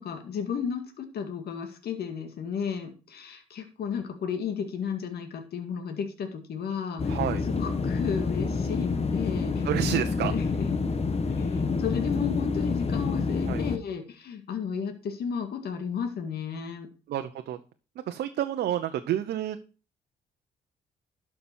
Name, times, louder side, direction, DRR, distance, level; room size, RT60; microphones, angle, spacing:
voice 1, 0.0-9.6 10.3-10.8 11.3-16.9, left 7 dB, 65° left, 6 dB, 2.0 m, -33 dB
sound 1, 7.0-13.8, left 4 dB, 35° left, 1.5 m, -28 dB
voice 2, 7.1-7.4 9.6-10.4 13.5-13.6 17.1-17.6 18.1-19.6, right 11 dB, 70° right, 7 dB, 0.9 m, -29 dB
12.0 x 6.2 x 4.4 m, 0.35 s
supercardioid pair, 55°, 18 cm